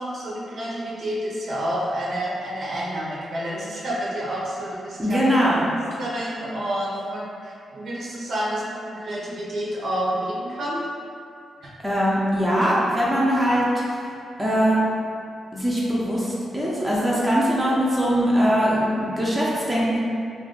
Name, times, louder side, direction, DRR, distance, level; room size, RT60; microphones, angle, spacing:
voice 1, 0.0-5.2 5.6-10.8 11.6-11.7, equal, 65° right, -7 dB, 0.9 m, -29 dB
voice 2, 5.0-5.6 11.8-14.1 14.4-14.8 15.5-20.0, equal, 10° right, -7 dB, 0.7 m, -21 dB
2.7 x 2.5 x 3.9 m, 2.4 s
cardioid pair, 95°, 0 cm